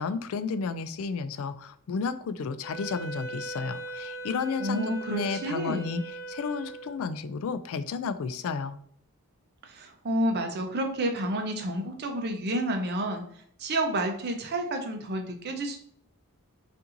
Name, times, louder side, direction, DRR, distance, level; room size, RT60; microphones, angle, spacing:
voice 1, 0.0-8.8, left 5 dB, 65° left, 13 dB, 0.3 m, -32 dB
Wind instrument woodwind instrument, 2.6-7.2, right 2 dB, 40° left, 0.9 m, -39 dB
voice 2, 4.6-6.0 9.6-13.2 13.6-15.8, right 1 dB, 45° right, 4 dB, 0.6 m, -30 dB
5.5 x 2.6 x 2.5 m, 0.62 s
head